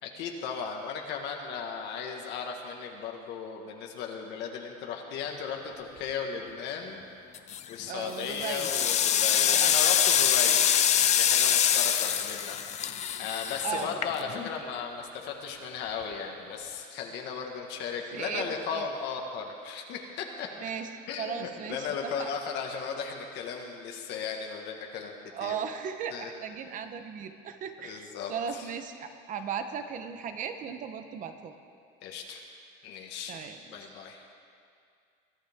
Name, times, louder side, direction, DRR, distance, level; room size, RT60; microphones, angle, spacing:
voice 1, 0.0-7.0 7.7-10.7 10.9-12.9 13.2-20.5 21.1-25.1 25.4-25.6 26.1-26.3 27.8-28.7 32.0-32.4 32.8-34.3, left 6 dB, 65° left, 2 dB, 1.6 m, -36 dB
sound 1, 7.3-7.7 8.2-14.5, left 9 dB, 35° left, 0.7 m, -25 dB
voice 2, 7.9-8.7 9.4-9.8 13.6-13.9 18.1-18.5 18.7-18.8 20.6-20.9 21.2-22.3 25.3-31.5 33.3-34.0, right 7 dB, 40° right, 8 dB, 1.0 m, -37 dB
22.0 x 12.5 x 3.6 m, 2.3 s
cardioid pair, 145°, 19 cm